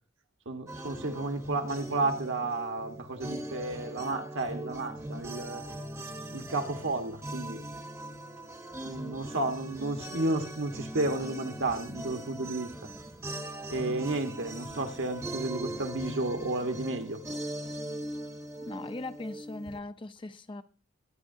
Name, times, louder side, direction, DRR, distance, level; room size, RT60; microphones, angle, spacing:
voice 1, 0.4-5.6 6.3-7.6 8.8-12.9 13.7-17.2, right 2 dB, 65° right, 1.3 m, -32 dB
sound 1, 0.7-19.8, right 1 dB, 15° right, 0.9 m, -40 dB
voice 2, 18.6-20.6, left 2 dB, 25° left, 0.5 m, -39 dB
21.5 x 9.6 x 2.7 m
head